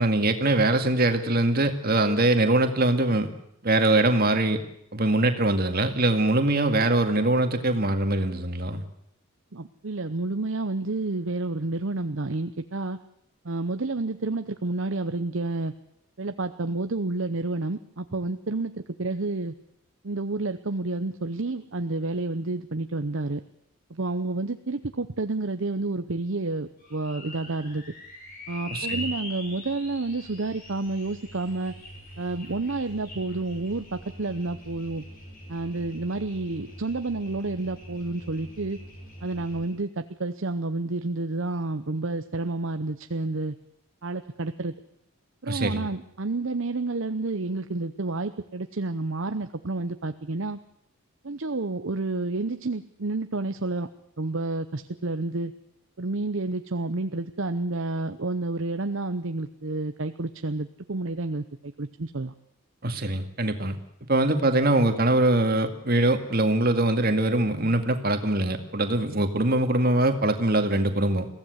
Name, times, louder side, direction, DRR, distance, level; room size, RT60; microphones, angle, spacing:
voice 1, 0.0-3.3 3.6-4.6 4.9-8.8 28.7-29.0 45.5-45.9 62.8-63.8 64.1-71.3, right 2 dB, 40° right, 7 dB, 2.1 m, -23 dB
voice 2, 9.5-13.0 13.4-15.7 16.2-19.5 20.0-23.4 23.9-27.8 28.5-31.8 32.2-35.0 35.5-38.8 39.2-43.5 44.0-44.7 45.4-50.6 51.2-53.9 54.2-55.5 56.0-62.3, right 2 dB, 60° right, 9 dB, 0.8 m, -30 dB
sound 1, 26.8-39.7, left 1 dB, 40° left, 7.2 m, -42 dB
22.5 x 16.0 x 8.0 m, 0.77 s
head